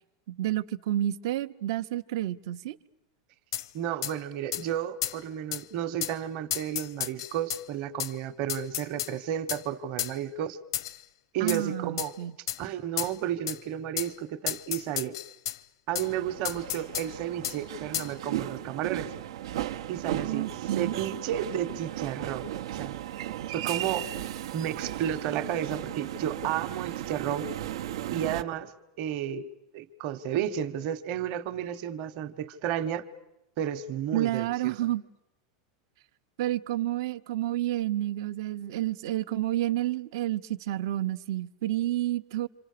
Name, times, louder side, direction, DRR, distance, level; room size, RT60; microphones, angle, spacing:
voice 1, 0.3-2.8 11.4-12.3 20.2-20.9 34.1-35.0 36.4-42.5, right 13 dB, 60° right, 0.8 m, -30 dB
sound 1, 3.5-3.7 4.0-4.1 4.5-4.6 5.0-5.2 5.5-5.6 6.0-6.2 6.5-7.6 8.0-8.1 8.5-9.1 9.5-9.6 10.0-10.1 10.7-11.0 11.5-11.6 12.0-12.1 12.5-12.6 13.0-13.1 13.5-13.6 14.0-14.1 14.5-15.6 15.9-16.1 16.4-17.1 17.4-17.6 17.9-18.1, left 12 dB, 75° left, 0.8 m, -32 dB
voice 2, 3.7-10.6 11.3-12.1 12.6-15.2 15.9-19.1 19.9-20.5 20.8-22.5 22.7-22.9 23.5-24.1 24.5-27.5 28.1-28.7 29.0-33.0 33.6-34.8, right 10 dB, 40° right, 1.2 m, -32 dB
sound 2, 16.0-28.4, right 12 dB, 85° right, 0.9 m, -36 dB
27.5 x 27.0 x 6.7 m
supercardioid pair, 165°, 3 cm